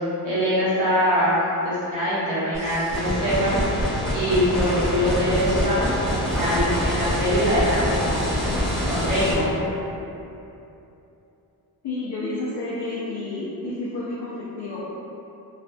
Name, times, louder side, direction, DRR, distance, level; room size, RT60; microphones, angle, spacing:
voice 1, 0.2-3.9 4.1-8.4 8.8-9.6, equal, 50° right, -11 dB, 1.2 m, -23 dB
sound 1, 2.5-9.3, equal, 30° right, 1.0 m, -25 dB
voice 2, 11.8-14.9, left 2 dB, 80° left, -8 dB, 0.6 m, -30 dB
3.3 x 2.2 x 2.5 m, 2.9 s
wide cardioid pair, 180°, 39 cm